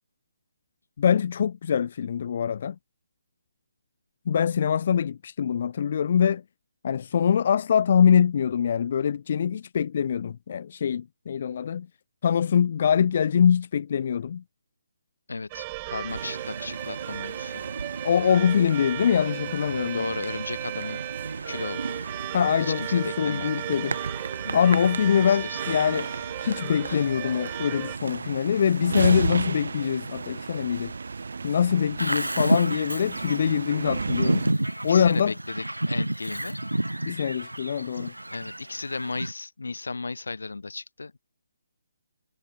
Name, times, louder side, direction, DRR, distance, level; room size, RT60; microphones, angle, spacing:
voice 1, 1.0-2.8 4.3-6.4 6.8-11.9 12.2-14.4 18.0-20.0 22.3-24.0 24.5-26.1 26.4-30.9 31.4-34.5 34.8-35.3 37.0-38.1, left 8 dB, 40° left, 0.5 m, -23 dB
voice 2, 15.3-17.6 19.8-21.0 21.5-22.0 22.6-23.6 24.4-24.7 25.2-25.8 26.8-27.0 34.9-36.6 38.3-41.2, left 3 dB, 65° left, 2.4 m, -35 dB
sound 1, 15.5-28.0, right 23 dB, 25° right, 2.0 m, -36 dB
sound 2, 16.1-34.5, right 4 dB, 55° right, 2.3 m, -34 dB
Bird vocalization bird call bird song, 32.0-39.3, right 1 dB, 80° right, 0.6 m, -29 dB
figure-of-eight pair, 140°, 0 cm